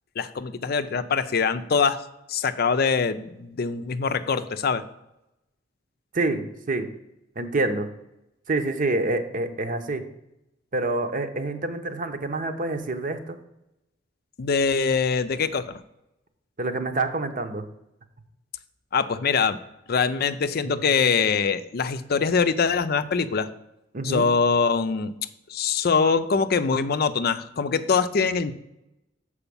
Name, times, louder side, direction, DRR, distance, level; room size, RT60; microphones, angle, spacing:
voice 1, 0.2-2.0 2.3-4.8 14.4-15.7 18.9-19.6 19.9-23.5 24.0-25.1 25.5-28.5, left 5 dB, 55° left, 11 dB, 0.5 m, -23 dB
voice 2, 6.1-6.9 7.4-7.9 8.5-10.0 10.7-13.4 16.6-17.6 20.6-20.8 23.9-24.2, right 2 dB, 45° right, 7 dB, 0.9 m, -27 dB
7.0 x 4.9 x 6.9 m, 0.87 s
head